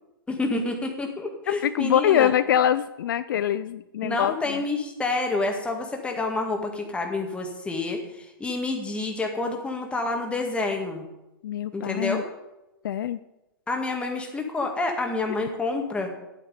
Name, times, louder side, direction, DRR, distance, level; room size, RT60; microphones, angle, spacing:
voice 1, 0.3-2.3 4.0-11.0 11.7-12.3 13.7-16.1, left 2 dB, 10° left, 3 dB, 1.9 m, -28 dB
voice 2, 1.5-4.6 11.4-12.2 12.8-13.2, left 10 dB, 65° left, 14 dB, 0.4 m, -24 dB
10.5 x 8.9 x 5.2 m, 0.95 s
hypercardioid pair, 120°, 12 cm